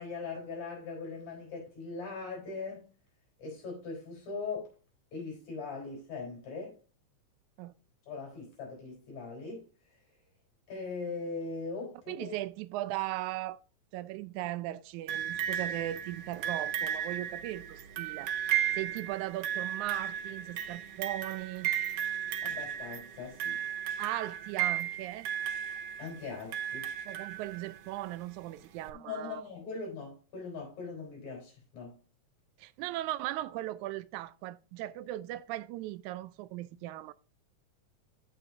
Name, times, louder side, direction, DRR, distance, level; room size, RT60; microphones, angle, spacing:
voice 1, 0.0-2.9 3.4-4.7 5.1-6.8 8.1-9.7 10.7-12.3 22.4-23.6 26.0-26.9 28.9-32.0, left 4 dB, 70° left, 5.3 m, -40 dB
voice 2, 12.1-13.6 13.9-21.7 24.0-25.3 27.1-29.4 32.6-37.1, right 15 dB, 85° right, 1.9 m, -38 dB
sound 1, 15.1-27.9 28.9-29.0, right 10 dB, 70° right, 1.7 m, -35 dB
14.0 x 5.7 x 2.6 m
omnidirectional pair, 3.4 m